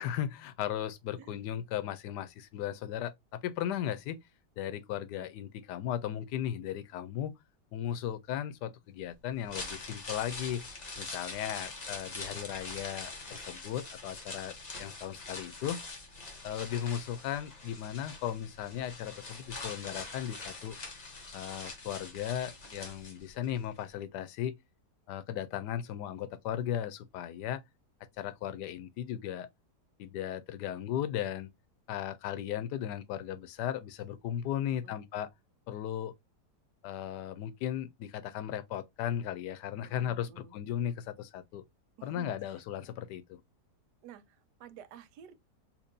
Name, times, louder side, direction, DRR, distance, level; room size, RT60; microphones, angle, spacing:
voice 1, 0.0-4.2 4.6-7.3 7.7-10.6 11.0-15.8 16.4-20.8 21.3-24.6 25.1-27.6 28.2-29.5 30.0-31.5 31.9-35.3 35.7-36.1 36.8-41.6 42.0-43.4, left 10 dB, 90° left, 1.2 m, -36 dB
sound 1, 9.3-23.5 23.8-23.9, left 3 dB, 30° left, 0.9 m, -44 dB
voice 2, 34.7-35.0 39.8-40.5 42.0-42.6 44.0-45.3, right 9 dB, 85° right, 1.2 m, -52 dB
4.3 x 2.9 x 2.6 m
omnidirectional pair, 1.7 m